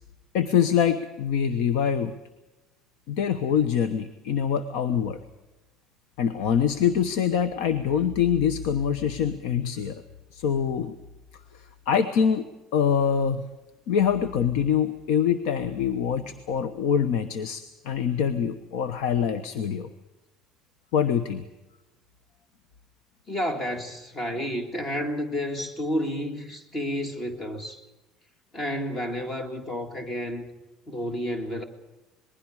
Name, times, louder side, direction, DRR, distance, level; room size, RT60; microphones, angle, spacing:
voice 1, 0.3-2.1 3.1-5.2 6.2-10.0 10.3-10.9 11.5-12.4 12.7-13.5 13.9-19.9 20.9-21.4, left 8 dB, 80° left, 1.1 m, -24 dB
voice 2, 23.3-27.8 28.5-30.5 30.9-31.6, equal, 30° left, 2.0 m, -30 dB
27.0 x 20.5 x 4.9 m
cardioid pair, 140°, 0 cm